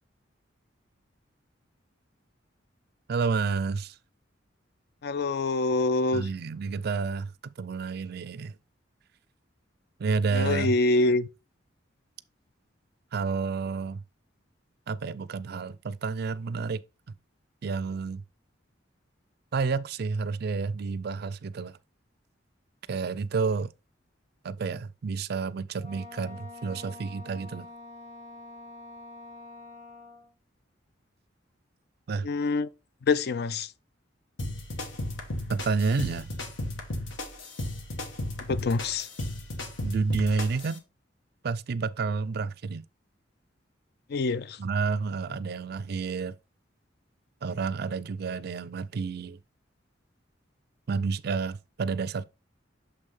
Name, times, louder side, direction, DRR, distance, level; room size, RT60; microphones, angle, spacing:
voice 1, 3.1-4.0 6.1-8.5 10.0-10.8 13.1-14.0 14.9-16.8 17.6-18.2 19.5-21.8 22.9-23.7 24.4-27.7 32.1-32.3 35.5-36.3 39.8-40.8 41.4-42.8 44.6-46.4 47.4-49.4 50.9-52.3, right 4 dB, 55° right, 0.4 m, -30 dB
voice 2, 5.0-6.3 10.3-11.3 32.2-32.7 33.1-33.7 38.4-39.1 44.1-44.6, left 3 dB, 55° left, 0.4 m, -25 dB
Wind instrument woodwind instrument, 25.8-30.3, left 3 dB, 35° left, 1.0 m, -46 dB
sound 1, 34.4-40.8, left 1 dB, 90° left, 1.3 m, -35 dB
6.7 x 5.5 x 3.2 m
head